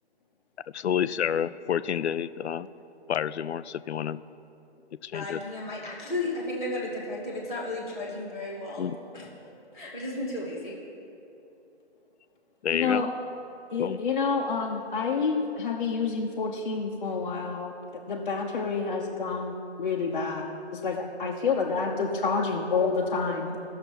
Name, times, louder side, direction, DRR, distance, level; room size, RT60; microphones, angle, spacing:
voice 1, 0.7-2.7 3.1-4.2 5.0-5.4 8.8-9.0 12.6-13.0 13.8-14.0, left 9 dB, 75° left, 16 dB, 0.5 m, -29 dB
voice 2, 5.1-8.9 9.1-10.7, left 2 dB, 5° right, -13 dB, 0.5 m, -34 dB
voice 3, 12.7-13.1 13.7-17.7 18.1-23.6, left 5 dB, 45° left, -3 dB, 0.8 m, -28 dB
17.5 x 6.7 x 3.0 m, 2.8 s
hypercardioid pair, 150°, 34 cm